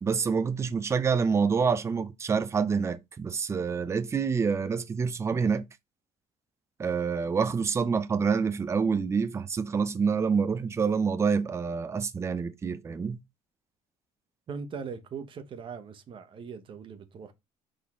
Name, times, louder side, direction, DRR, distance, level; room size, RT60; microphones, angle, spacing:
voice 1, 0.0-5.7 6.8-13.2, right 5 dB, 20° right, 0.5 m, -27 dB
voice 2, 14.5-17.3, right 5 dB, 35° right, 1.1 m, -40 dB
5.3 x 4.3 x 4.3 m
cardioid pair, 150°, 15 cm